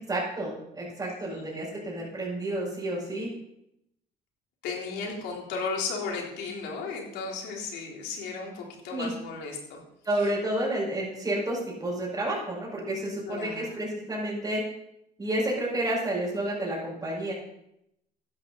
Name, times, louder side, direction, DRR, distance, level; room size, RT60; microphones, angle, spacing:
voice 1, 0.1-3.3 8.9-9.1 10.0-14.6 15.2-17.3, right 1 dB, 20° right, -8 dB, 5.5 m, -30 dB
voice 2, 4.6-9.8 10.2-10.3 13.3-13.7, left 4 dB, 90° left, -1 dB, 3.7 m, -35 dB
13.5 x 10.5 x 4.1 m, 0.80 s
cardioid pair, 110°, 17 cm